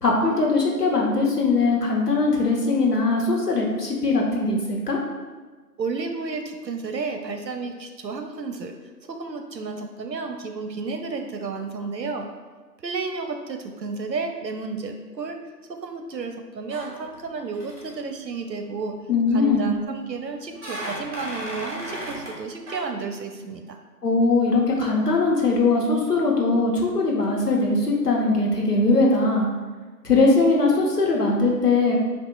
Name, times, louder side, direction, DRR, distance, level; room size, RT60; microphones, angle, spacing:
voice 1, 0.0-5.0 19.1-19.7 24.0-29.5 30.0-32.0, left 3 dB, 70° left, -2 dB, 1.3 m, -21 dB
voice 2, 5.8-8.7 9.1-12.3 12.8-15.4 15.7-19.0 19.3-23.8, right 4 dB, 80° right, 5 dB, 0.8 m, -32 dB
sound 1, 16.7-17.3 17.5-17.9 19.3-19.8 20.5-22.4 22.7-22.8, right 1 dB, 35° right, 1.5 m, -35 dB
8.2 x 2.8 x 2.3 m, 1.4 s
figure-of-eight pair, 165°, 50 cm